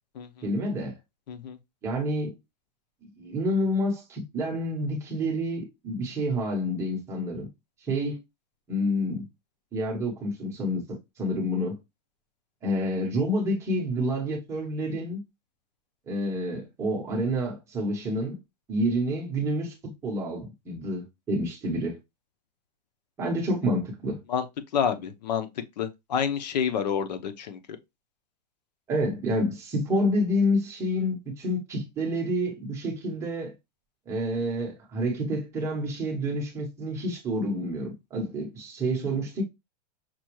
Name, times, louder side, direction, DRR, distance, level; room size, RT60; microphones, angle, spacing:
voice 1, 0.4-1.0 1.8-2.3 3.2-7.5 7.8-8.2 8.7-9.2 9.7-11.8 12.6-15.2 16.1-18.4 18.7-19.7 20.0-22.0 23.2-24.2 28.9-33.5 34.1-39.4, equal, 15° right, 1.0 m, -28 dB
voice 2, 24.7-25.5 25.8-27.6, left 7 dB, 90° left, 0.8 m, -28 dB
5.9 x 2.3 x 3.0 m
supercardioid pair, 170°, 21 cm